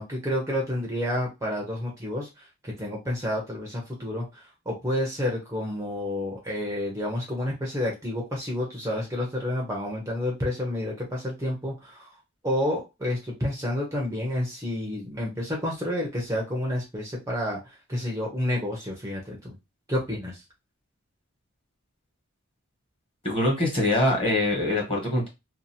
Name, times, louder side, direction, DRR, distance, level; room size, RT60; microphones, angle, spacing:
voice 1, 0.0-12.1 12.4-19.5 19.9-20.4, left 1 dB, 15° right, -2 dB, 0.6 m, -30 dB
voice 2, 23.2-25.3, left 1 dB, 25° left, -1 dB, 1.2 m, -23 dB
2.6 x 2.4 x 2.7 m, 0.24 s
head